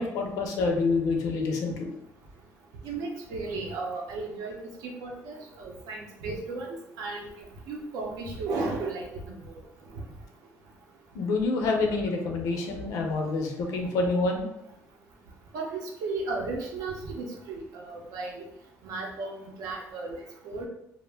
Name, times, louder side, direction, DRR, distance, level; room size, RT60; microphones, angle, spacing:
voice 1, 0.0-1.9 11.1-14.5, left 3 dB, 90° left, 2 dB, 0.6 m, -27 dB
voice 2, 2.8-4.6 4.8-9.5 9.9-10.0 15.5-18.5 18.8-20.2 20.4-20.7, right 3 dB, 90° right, 0 dB, 0.6 m, -35 dB
2.5 x 2.0 x 3.3 m, 0.81 s
cardioid pair, 155°, 6 cm